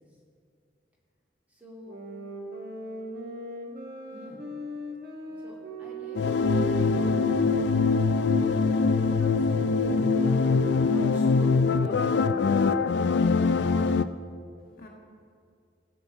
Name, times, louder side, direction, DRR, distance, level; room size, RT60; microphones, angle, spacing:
voice 1, 1.5-2.0 4.1-4.4 5.4-7.3 8.4-12.8, equal, 10° right, -5 dB, 2.4 m, -45 dB
sound 1, 1.8-11.8, right 2 dB, 55° right, 1.7 m, -39 dB
sound 2, 6.2-14.1, left 4 dB, 70° left, 0.4 m, -23 dB
voice 2, 10.6-11.2 14.6-14.9, left 1 dB, 55° left, 0 dB, 1.4 m, -54 dB
16.0 x 7.5 x 4.3 m, 2.3 s
head